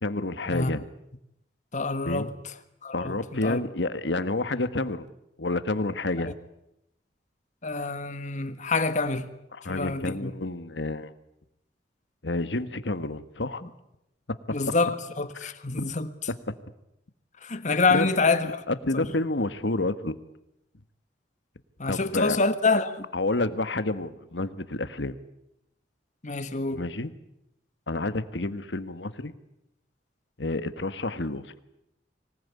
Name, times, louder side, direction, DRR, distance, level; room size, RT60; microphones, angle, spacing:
voice 1, 0.0-0.8 2.0-2.3 2.9-5.1 5.4-6.3 9.6-11.1 12.2-13.6 14.5-14.6 15.4-15.5 15.8-15.9 17.9-18.1 18.7-20.2 21.9-22.4 23.1-25.2 26.7-27.1 27.9-29.3 30.4-31.6, left 2 dB, 85° left, 1.5 m, -29 dB
voice 2, 1.7-2.3 2.8-3.6 7.6-9.3 9.7-10.3 14.5-16.1 17.4-18.6 18.9-19.1 21.8-23.1 26.2-26.9, left 3 dB, 45° left, 1.4 m, -26 dB
25.0 x 19.0 x 9.6 m
head